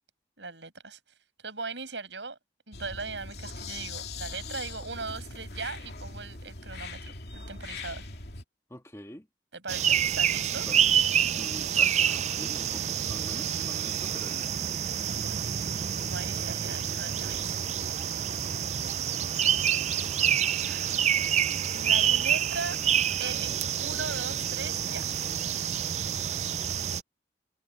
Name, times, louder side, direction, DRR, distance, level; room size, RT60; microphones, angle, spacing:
voice 1, 0.4-1.0 1.4-2.4 2.7-8.1 9.5-10.7 15.0-15.5 15.8-17.6 20.6-21.1 21.7-22.8 23.2-25.0, right 4 dB, 80° right, 6.8 m, -39 dB
sound 1, 2.7-8.4, left 3 dB, 60° left, 3.2 m, -41 dB
voice 2, 8.7-9.2 10.7-10.8 11.4-14.5, equal, 15° left, 1.7 m, -45 dB
sound 2, 9.7-27.0, right 9 dB, 35° right, 0.4 m, -27 dB
head